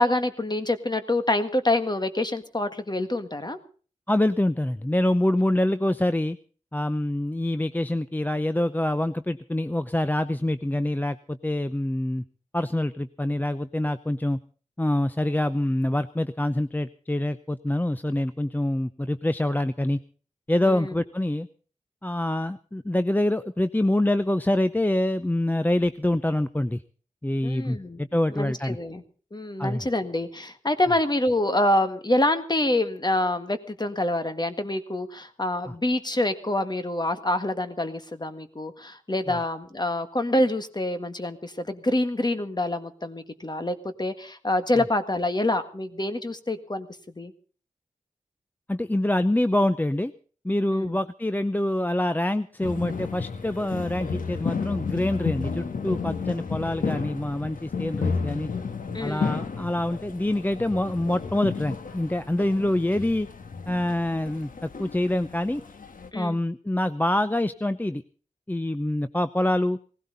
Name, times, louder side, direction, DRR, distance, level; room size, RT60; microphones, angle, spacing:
voice 1, 0.0-3.6 20.7-20.9 27.4-28.0 28.3-29.0 29.3-46.9 47.2-47.3 50.7-51.0 58.9-59.3 66.1-66.4, left 1 dB, 30° left, 9 dB, 1.8 m, -26 dB
voice 2, 4.1-6.4 6.7-12.2 12.5-14.4 14.8-20.0 20.5-21.5 22.0-26.8 27.2-28.8 29.6-29.9 35.7-35.8 39.3-39.4 48.7-50.1 50.4-58.5 59.0-63.3 63.7-65.6 66.1-68.0 68.5-69.8, left 1 dB, 15° left, 12 dB, 0.7 m, -25 dB
sound 1, 52.6-66.1, left 5 dB, 80° left, 1.4 m, -32 dB
19.0 x 16.0 x 4.0 m, 0.41 s
cardioid pair, 50°, 14 cm